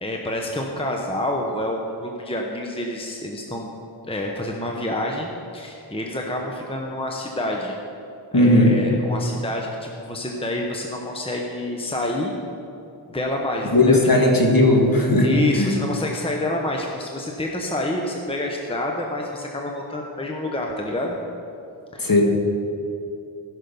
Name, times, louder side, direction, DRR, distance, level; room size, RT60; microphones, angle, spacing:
voice 1, 0.0-3.7 4.0-7.8 8.3-12.3 13.1-14.3 15.2-21.1 21.9-22.1, left 1 dB, 10° left, 0 dB, 1.0 m, -28 dB
voice 2, 8.3-8.7 13.7-15.3 15.6-15.7 22.0-22.2, left 1 dB, 45° left, 0 dB, 2.0 m, -16 dB
15.5 x 6.4 x 5.4 m, 2.7 s
wide cardioid pair, 75°, 48 cm